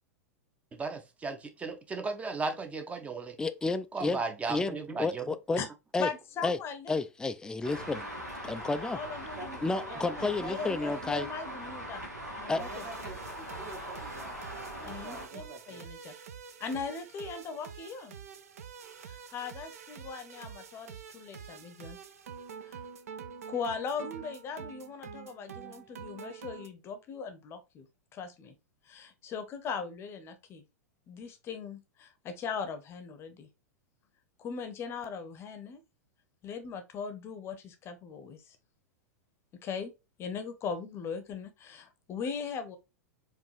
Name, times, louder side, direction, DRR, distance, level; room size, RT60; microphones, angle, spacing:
voice 1, 0.8-3.4 3.9-5.3, right 4 dB, 15° right, 0.7 m, -35 dB
voice 2, 3.4-4.2 4.5-5.6 5.9-6.1 6.4-6.6 6.9-8.1 8.4-9.0 9.6-11.3 12.5-12.6, left 3 dB, 10° left, 0.3 m, -31 dB
voice 3, 6.0-7.0 8.6-12.0 12.3-12.8 14.8-15.4 15.7-16.1 16.6-18.2 19.0-22.0 22.6-22.8 23.5-27.9 28.1-28.5 28.9-30.6 31.1-33.5 34.4-35.8 36.4-38.6 39.6-39.9 40.2-42.8, left 5 dB, 30° left, 0.8 m, -39 dB
Traffic noise roadway noise, 7.6-15.3, equal, 85° right, 1.3 m, -41 dB
voice 4, 9.3-10.9 12.5-14.4 14.7-15.9, right 2 dB, 35° right, 1.1 m, -45 dB
sound 1, 12.6-26.7, right 7 dB, 65° right, 0.5 m, -47 dB
4.6 x 2.6 x 3.2 m
figure-of-eight pair, 95°, 9 cm